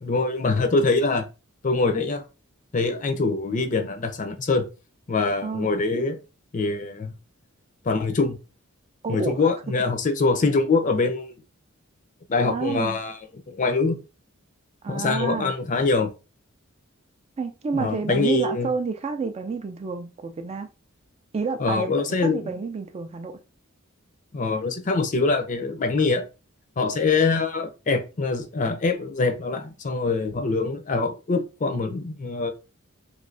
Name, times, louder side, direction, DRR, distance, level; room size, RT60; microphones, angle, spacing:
voice 1, 0.0-1.3 1.6-2.2 2.7-4.7 5.1-6.2 6.5-7.1 7.8-8.4 9.1-11.3 12.3-13.1 13.5-14.0 14.9-16.1 17.7-18.7 21.6-22.5 24.3-26.3 26.8-32.5, left 3 dB, 40° left, 0.5 m, -24 dB
voice 2, 9.0-9.5 12.4-13.0 14.8-15.5 17.4-20.7 21.3-21.9 22.2-23.4, right 4 dB, 30° right, 0.3 m, -29 dB
3.1 x 2.7 x 2.6 m
head